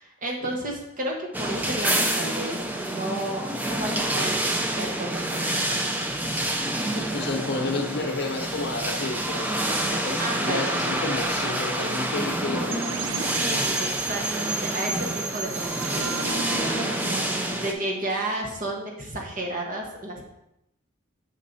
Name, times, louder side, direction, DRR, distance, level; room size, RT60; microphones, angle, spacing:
voice 1, 0.0-5.8 10.2-10.8 13.3-20.2, right 1 dB, 40° right, 0 dB, 1.1 m, -32 dB
sound 1, 1.3-17.7, right 1 dB, 10° right, 0.4 m, -28 dB
voice 2, 6.9-13.0, left 3 dB, 55° left, 5 dB, 0.6 m, -31 dB
sound 2, 12.7-18.5, right 3 dB, 85° right, 0.6 m, -33 dB
6.5 x 6.5 x 2.7 m, 0.84 s
head